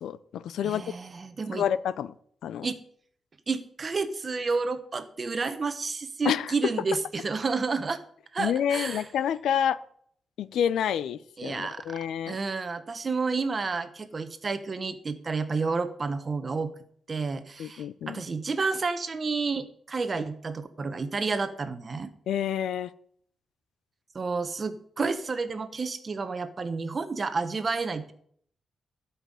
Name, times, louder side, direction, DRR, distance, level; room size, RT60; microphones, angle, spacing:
voice 1, 0.0-0.8 1.5-2.1 2.4-2.7 6.2-6.5 8.4-9.8 10.4-12.4 17.6-18.2 22.3-22.9, left 9 dB, 90° left, 17 dB, 0.6 m, -28 dB
voice 2, 0.6-1.6 2.6-2.8 3.5-8.0 8.3-9.1 11.4-12.0 12.3-16.7 17.1-22.1 24.1-28.1, right 4 dB, 35° right, 11 dB, 1.2 m, -30 dB
12.5 x 5.8 x 9.0 m, 0.63 s
cardioid pair, 110°, 0 cm